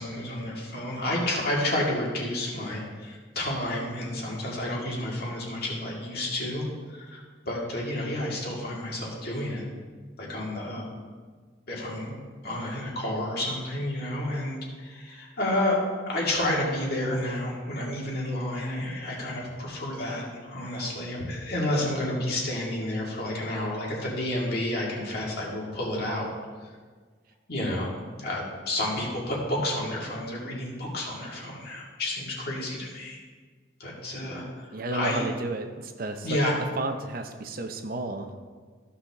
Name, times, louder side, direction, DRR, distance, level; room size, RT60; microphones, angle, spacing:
voice 1, 0.0-9.6 10.2-10.8 11.7-15.8 16.1-26.3 26.6-26.7 27.5-27.9 28.2-33.2 33.8-35.3 36.2-36.5, left 1 dB, 55° left, -4 dB, 2.2 m, -30 dB
voice 2, 34.7-36.3 36.8-38.3, right 2 dB, 50° right, 6 dB, 0.6 m, -32 dB
14.5 x 5.6 x 3.6 m, 1.5 s
head